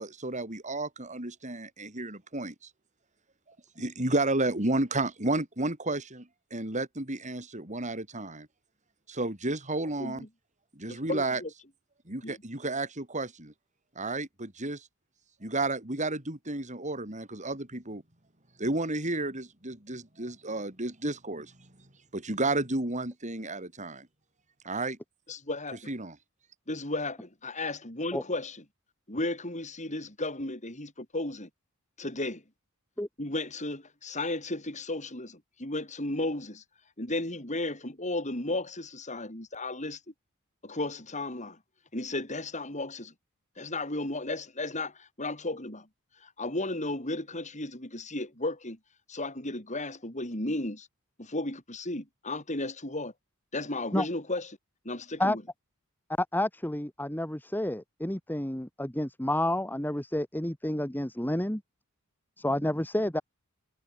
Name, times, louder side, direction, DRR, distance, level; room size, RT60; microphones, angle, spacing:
voice 1, 0.0-2.5 3.8-8.5 9.1-10.2 10.7-11.4 12.1-13.5 13.9-14.9 15.4-18.0 18.6-21.5 22.1-24.1 24.6-25.0 25.9-26.2, right 2 dB, 35° right, 5.2 m, -32 dB
voice 2, 10.9-11.5 12.2-12.4 25.3-25.8 26.7-28.6 29.1-31.5 32.0-32.4 33.2-36.6 37.0-40.0 40.6-41.6 41.9-43.1 43.6-45.9 46.2-48.8 49.1-50.9 51.2-53.1 53.5-54.5 54.8-55.4, left 2 dB, 35° left, 7.7 m, -34 dB
voice 3, 56.2-61.6 62.4-63.2, left 1 dB, 10° left, 2.2 m, -30 dB
head